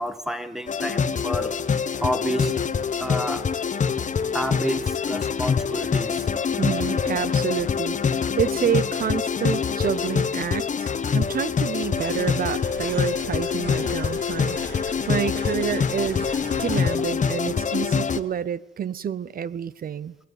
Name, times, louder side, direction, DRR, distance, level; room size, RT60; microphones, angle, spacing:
voice 1, 0.0-1.5 2.0-2.5 3.0-3.5 4.3-6.5, equal, ahead, 1.8 m, -29 dB
sound 1, 0.7-18.2, left 6 dB, 40° left, 1.2 m, -25 dB
voice 2, 6.6-16.3 16.6-20.2, right 9 dB, 45° right, 0.8 m, -28 dB
sound 2, 12.0-17.0, right 3 dB, 65° right, 7.2 m, -40 dB
21.0 x 20.0 x 8.2 m
cardioid pair, 90°, 20 cm